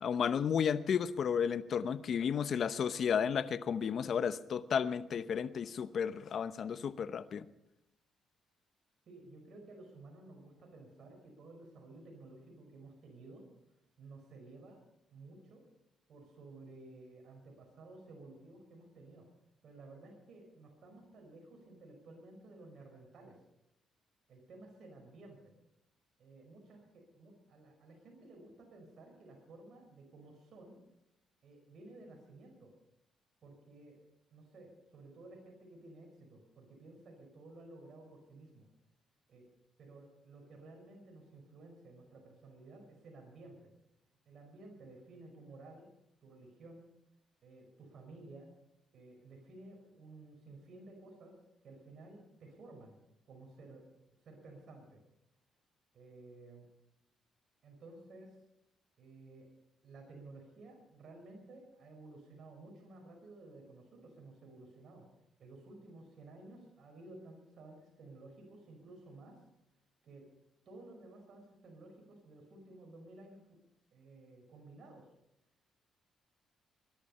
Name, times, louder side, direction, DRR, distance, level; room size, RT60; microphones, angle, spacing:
voice 1, 0.0-7.5, left 7 dB, 60° left, 13 dB, 0.9 m, -33 dB
voice 2, 9.1-13.5 14.0-14.8 15.1-15.6 16.1-19.3 19.6-23.4 24.3-25.5 26.2-30.8 31.4-32.7 33.4-34.0 34.3-38.7 39.3-39.5 39.8-43.7 44.3-45.9 46.2-46.9 47.4-48.5 48.9-51.4 51.6-53.0 53.3-55.0 55.9-56.7 57.6-58.4 59.0-59.5 59.8-65.1 65.4-69.4 70.0-70.3 70.7-73.5 73.9-75.1, right 2 dB, 60° right, 1 dB, 5.4 m, -54 dB
20.5 x 12.0 x 5.6 m, 0.84 s
cardioid pair, 90°, 0 cm